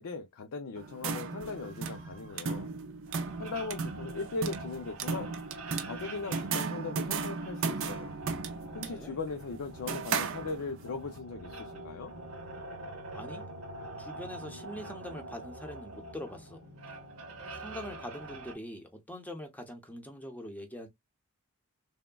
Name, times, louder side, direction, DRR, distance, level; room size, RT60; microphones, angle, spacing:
voice 1, 0.0-2.7 3.4-5.4 5.8-8.1 8.7-12.1, left 4 dB, 70° left, 0.5 m, -39 dB
sound 1, 0.8-10.9, right 5 dB, 60° right, 0.5 m, -36 dB
sound 2, 3.1-18.6, right 2 dB, 80° right, 0.8 m, -45 dB
voice 2, 8.8-9.2 13.1-13.4 14.0-16.6 17.5-20.9, equal, 5° left, 0.6 m, -43 dB
3.4 x 2.1 x 2.2 m
head